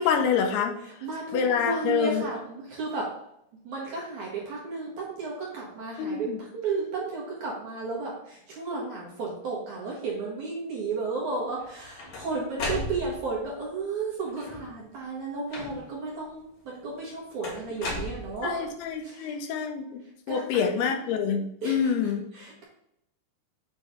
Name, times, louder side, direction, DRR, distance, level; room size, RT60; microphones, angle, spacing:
voice 1, 0.0-0.7 1.3-2.3 6.0-6.4 12.6-12.8 17.9-18.0 18.4-20.0 20.3-22.2, left 7 dB, 90° left, 4 dB, 2.8 m, -27 dB
voice 2, 0.8-3.1 3.6-18.7 19.0-19.4 20.3-20.6 21.6-21.9 22.3-22.6, right 3 dB, 65° right, -4 dB, 2.3 m, -33 dB
sound 1, 11.6-13.4 14.3-14.8 15.5-16.1 17.4-18.7, left 2 dB, 55° left, 2.4 m, -36 dB
7.5 x 3.2 x 4.9 m, 0.78 s
omnidirectional pair, 4.5 m